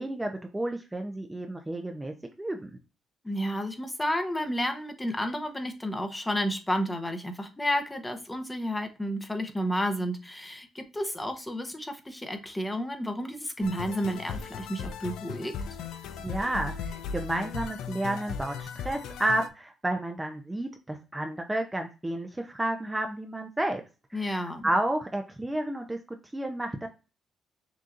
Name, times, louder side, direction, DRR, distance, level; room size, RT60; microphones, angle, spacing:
voice 1, 0.0-2.7 16.2-23.8 24.1-24.2 24.6-26.9, right 1 dB, 10° right, 4 dB, 0.6 m, -31 dB
voice 2, 3.2-15.5 24.1-24.7, equal, 15° left, 6 dB, 0.9 m, -31 dB
sound 1, 13.6-19.5, left 6 dB, 85° left, 0.4 m, -37 dB
6.2 x 2.7 x 2.5 m, 0.31 s
cardioid pair, 90°, 0 cm